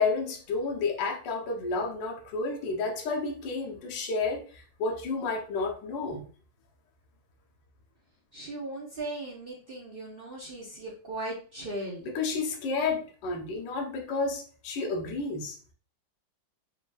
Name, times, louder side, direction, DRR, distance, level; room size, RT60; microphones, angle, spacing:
voice 1, 0.0-6.2 12.0-15.6, left 4 dB, 70° left, 1 dB, 1.5 m, -31 dB
voice 2, 8.3-12.1, right 2 dB, 65° right, -3 dB, 0.5 m, -38 dB
5.6 x 2.7 x 2.3 m, 0.40 s
omnidirectional pair, 2.1 m